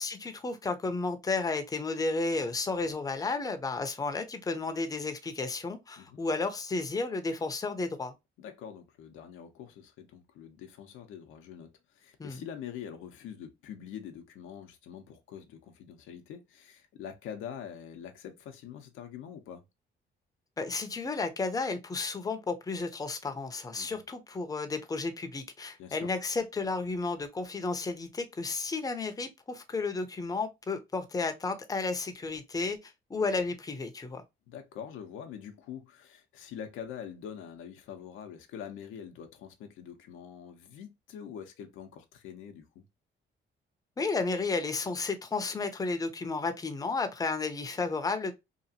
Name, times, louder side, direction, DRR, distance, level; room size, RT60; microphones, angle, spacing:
voice 1, 0.0-8.1 12.2-12.4 20.6-34.2 44.0-48.3, left 3 dB, 20° left, 0.6 m, -32 dB
voice 2, 8.4-19.6 23.8-24.0 25.8-26.1 34.5-42.8, left 8 dB, 90° left, 0.6 m, -44 dB
2.8 x 2.4 x 2.7 m
cardioid pair, 90°, 20 cm